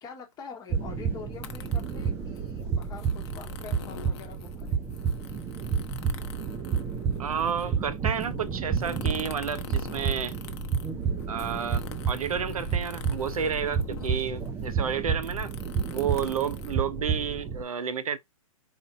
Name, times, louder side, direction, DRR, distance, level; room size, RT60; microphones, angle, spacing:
voice 1, 0.0-4.8 11.4-11.7, left 6 dB, 20° left, 1.1 m, -45 dB
sound 1, 0.7-17.6, right 6 dB, 10° right, 0.4 m, -31 dB
sound 2, 1.3-17.4, left 9 dB, 50° left, 0.7 m, -46 dB
voice 2, 7.2-10.3 11.3-15.5 15.9-18.2, right 7 dB, 85° right, 0.6 m, -31 dB
4.3 x 2.6 x 3.6 m
hypercardioid pair, 130°, 18 cm